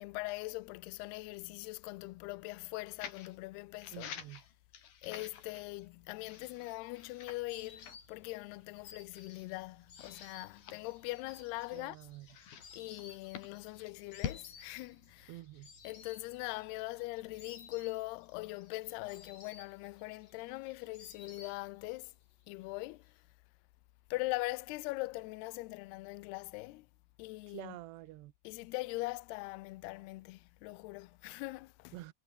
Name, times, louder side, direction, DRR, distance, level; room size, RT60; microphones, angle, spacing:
voice 1, 0.0-4.1 5.0-12.0 12.7-15.4 15.8-22.1 22.5-23.1 24.1-26.9 27.2-27.8 28.4-32.0, left 22 dB, 85° left, 2.4 m, -41 dB
sound 1, 3.0-3.4 3.8-5.9 6.2-7.5 7.8-8.0 8.6-8.7 9.1-9.6 9.9-11.6 12.3-14.4, left 8 dB, 55° left, 4.2 m, -47 dB
voice 2, 3.9-4.4 11.7-12.3 15.3-15.7 27.5-28.3 31.9-32.1, right 18 dB, 75° right, 2.7 m, -48 dB
sound 2, 4.5-17.5, right 4 dB, 50° right, 9.3 m, -72 dB
Insect, 6.6-22.0 22.3-23.1, left 5 dB, 35° left, 4.9 m, -58 dB
omnidirectional pair, 5.5 m